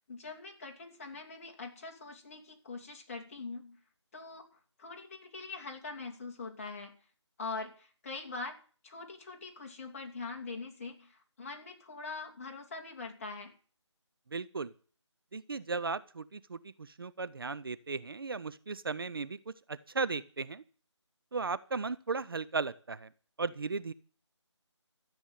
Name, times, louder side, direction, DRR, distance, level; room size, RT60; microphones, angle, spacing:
voice 1, 0.1-3.8 4.1-4.5 4.8-6.9 7.4-8.6 8.8-13.5, left 3 dB, 30° left, 3 dB, 2.6 m, -43 dB
voice 2, 14.3-14.7 15.3-20.6 21.3-23.1 23.4-23.9, right 4 dB, 50° right, 16 dB, 0.7 m, -36 dB
13.5 x 8.1 x 9.0 m, 0.41 s
figure-of-eight pair, 165°, 16 cm